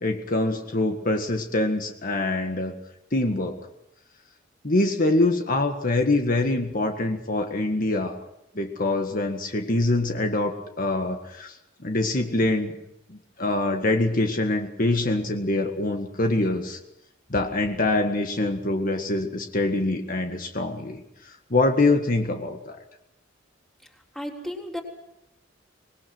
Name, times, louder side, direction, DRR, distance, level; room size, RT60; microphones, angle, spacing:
voice 1, 0.0-2.7 3.1-3.5 4.6-8.2 8.6-11.6 11.8-12.8 13.1-16.8 17.3-22.8, left 2 dB, 45° left, 4 dB, 1.8 m, -24 dB
voice 2, 24.2-24.8, left 1 dB, ahead, 1 dB, 3.7 m, -33 dB
25.0 x 20.5 x 6.2 m, 0.86 s
head